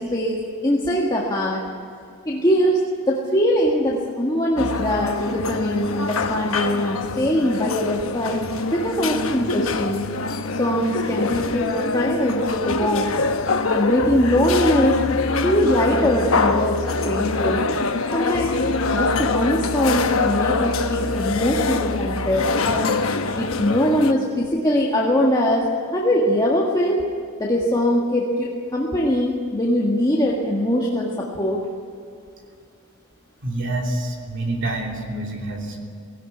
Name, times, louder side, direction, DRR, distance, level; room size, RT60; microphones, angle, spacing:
voice 1, 0.0-1.6 2.2-10.1 10.6-13.1 13.7-15.0 15.4-17.6 18.1-18.6 18.9-23.0 23.4-27.0 27.4-31.7, equal, 15° left, -3 dB, 1.8 m, -22 dB
sound 1, 4.6-24.1, left 3 dB, 65° left, 1.1 m, -24 dB
voice 2, 33.4-35.8, right 2 dB, 55° right, 1 dB, 3.2 m, -27 dB
17.5 x 16.5 x 9.3 m, 2.4 s
head